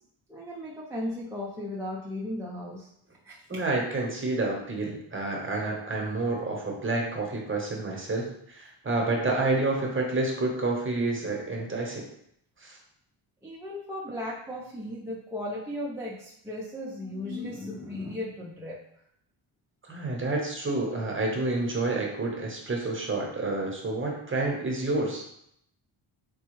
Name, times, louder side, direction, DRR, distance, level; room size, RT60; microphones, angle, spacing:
voice 1, 0.3-2.9 3.2-3.4 13.4-18.8, left 1 dB, 5° right, -5 dB, 0.5 m, -36 dB
voice 2, 3.5-12.1 12.6-12.8 19.9-25.2, right 2 dB, 25° right, -1 dB, 0.9 m, -29 dB
4.2 x 2.2 x 3.1 m, 0.73 s
cardioid pair, 90°, 48 cm